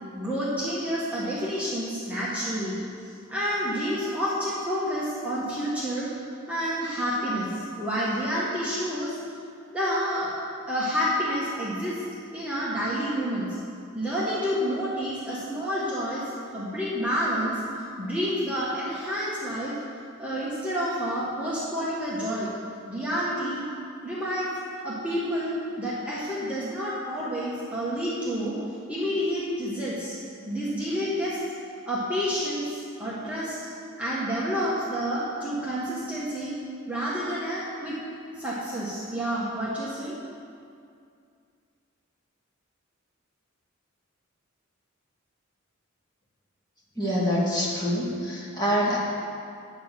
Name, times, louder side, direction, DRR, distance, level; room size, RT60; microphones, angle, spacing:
voice 1, 0.1-6.1 6.5-9.2 9.7-10.3 10.7-12.0 12.3-13.6 13.9-17.6 18.0-19.8 20.2-22.5 22.9-23.7 24.0-24.5 24.8-28.6 28.9-30.2 30.4-31.4 31.9-33.6 34.0-36.6 36.9-38.0 38.3-40.2, equal, 5° right, -8 dB, 1.5 m, -29 dB
voice 2, 47.0-49.0, equal, 20° left, -6 dB, 2.1 m, -25 dB
9.7 x 8.5 x 5.8 m, 2.4 s
head